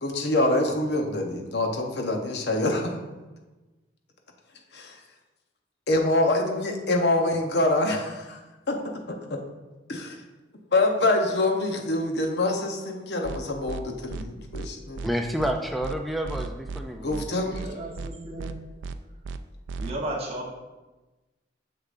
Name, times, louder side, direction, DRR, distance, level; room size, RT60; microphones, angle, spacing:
voice 1, 0.0-3.0 4.7-5.0 5.9-8.4 8.7-9.4 9.9-10.2 10.7-15.1 17.0-17.6, left 2 dB, 65° left, 3 dB, 0.8 m, -25 dB
sound 1, 13.2-13.4 13.7-13.8 14.1-14.2 14.5-14.7 15.0-15.1 15.4-15.5 15.8-16.0 16.2-16.8 17.1-17.2 17.5-17.7 18.0-18.1 18.4-18.5 18.8-19.0 19.2-19.4 19.7-19.9, right 4 dB, 80° right, 0.3 m, -35 dB
voice 2, 15.0-17.4, equal, ahead, 4 dB, 0.3 m, -29 dB
voice 3, 17.4-18.6 19.8-20.5, right 1 dB, 35° right, -4 dB, 1.0 m, -34 dB
6.8 x 6.6 x 2.5 m, 1.1 s
head